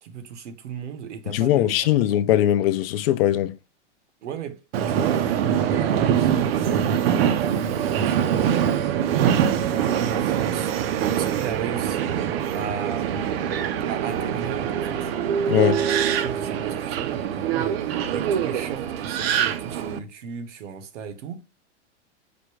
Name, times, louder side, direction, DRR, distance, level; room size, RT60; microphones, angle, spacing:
voice 1, 0.0-2.1 4.2-4.6 4.9-5.3 5.7-10.7 11.1-15.1 16.2-21.4, right 7 dB, 75° right, 1.0 m, -36 dB
voice 2, 1.3-3.5 15.5-15.8, left 12 dB, 55° left, 0.6 m, -20 dB
Subway metro underground, 4.7-20.0, right 9 dB, 55° right, 0.6 m, -24 dB
5.1 x 2.2 x 4.6 m
hypercardioid pair, 140°, 35 cm